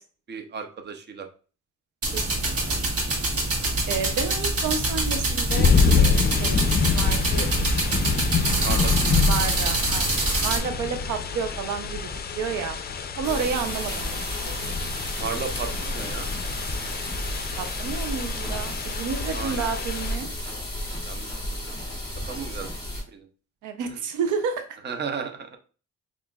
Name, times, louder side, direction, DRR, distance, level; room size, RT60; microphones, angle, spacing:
voice 1, 0.3-1.3 8.6-9.2 15.2-16.3 19.2-19.7 21.0-21.7 22.3-22.7 23.1-23.3 24.8-25.6, right 5 dB, 35° right, 6 dB, 0.7 m, -34 dB
sound 1, 2.0-10.6, right 2 dB, 50° right, 1.4 m, -25 dB
voice 2, 2.1-2.8 3.9-7.5 9.2-12.1 12.4-12.8 13.2-14.2 14.5-14.8 17.6-20.3 23.6-24.6, right 6 dB, 80° right, 7 dB, 0.6 m, -31 dB
sound 2, 5.5-20.2, left 5 dB, 35° left, 0.5 m, -26 dB
sound 3, 13.2-23.0, left 1 dB, 15° left, 1.6 m, -32 dB
5.6 x 2.5 x 2.3 m, 0.37 s
cardioid pair, 90°, 30 cm